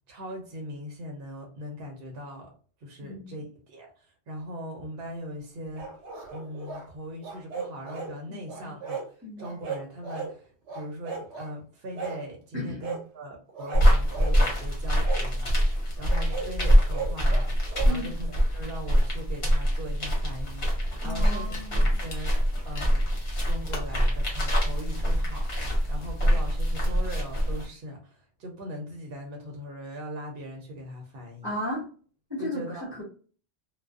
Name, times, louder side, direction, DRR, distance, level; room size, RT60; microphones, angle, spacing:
voice 1, 0.1-2.5 2.8-5.9 6.3-9.0 9.4-23.0 23.4-31.5 32.4-32.9, equal, 60° right, 1 dB, 0.8 m, -40 dB
voice 2, 3.0-3.4 8.3-8.7 9.2-9.5 12.5-12.8 17.8-18.2 21.0-22.0 31.4-31.8 32.3-32.6 33.0-33.1, left 1 dB, 25° right, -6 dB, 0.8 m, -35 dB
sound 1, 5.7-6.9 7.2-8.1 8.5-9.1 9.4-10.3 10.7-11.5 11.9-12.2 12.8-13.0 13.5-14.4 15.0-15.3 16.1-17.9, right 5 dB, 90° right, 0.9 m, -36 dB
sound 2, 13.7-27.7, equal, 65° left, 1.1 m, -24 dB
sound 3, 20.1-26.6, left 1 dB, 50° left, 0.6 m, -46 dB
2.4 x 2.2 x 2.3 m, 0.40 s
omnidirectional pair, 1.1 m